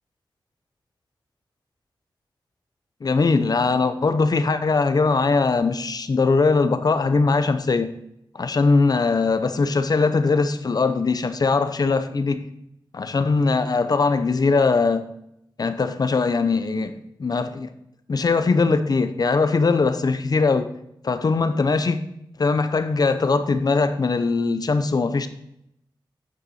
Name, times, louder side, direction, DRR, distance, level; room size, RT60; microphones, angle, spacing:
voice 1, 3.0-7.9 8.3-12.4 12.9-15.0 15.6-17.7 18.1-20.7 21.0-22.0 22.4-25.3, left 4 dB, 50° left, 10 dB, 0.8 m, -21 dB
9.2 x 6.7 x 4.3 m, 0.78 s
wide cardioid pair, 80°, 9 cm